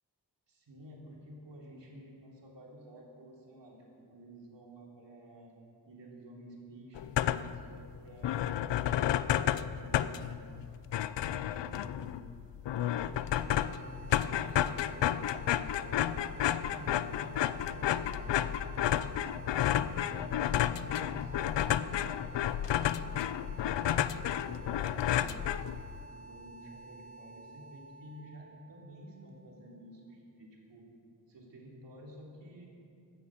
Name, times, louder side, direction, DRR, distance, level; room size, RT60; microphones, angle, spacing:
voice 1, 0.5-5.6 5.8-10.4 11.1-12.2 12.7-19.0 19.7-22.3 22.9-23.3 23.5-25.5 26.1-30.9 31.3-32.7, right 1 dB, 85° right, -2 dB, 3.5 m, -52 dB
sound 1, 7.0-7.7 8.0-8.1 8.2-26.1, left 11 dB, 85° left, 0.6 m, -31 dB
sound 2, 13.0-29.9, right 2 dB, 40° left, 2.4 m, -52 dB
16.0 x 12.5 x 6.5 m, 2.5 s
wide cardioid pair, 155°, 42 cm